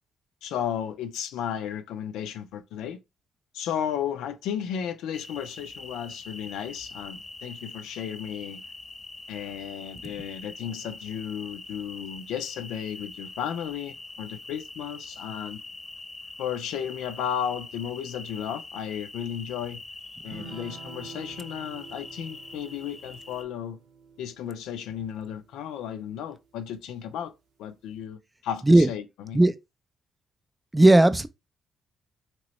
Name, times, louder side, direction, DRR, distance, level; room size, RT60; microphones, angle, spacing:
voice 1, 0.4-3.0 3.5-8.6 9.3-15.6 16.4-19.8 20.2-23.8 24.2-27.3 27.6-29.4, left 9 dB, 90° left, 0.4 m, -34 dB
sound 1, 5.1-23.4, left 2 dB, 25° left, 0.8 m, -43 dB
sound 2, 20.2-25.9, right 5 dB, 90° right, 0.8 m, -48 dB
voice 2, 30.7-31.3, right 1 dB, 15° right, 0.3 m, -16 dB
3.0 x 2.9 x 3.0 m
cardioid pair, 90°, 0 cm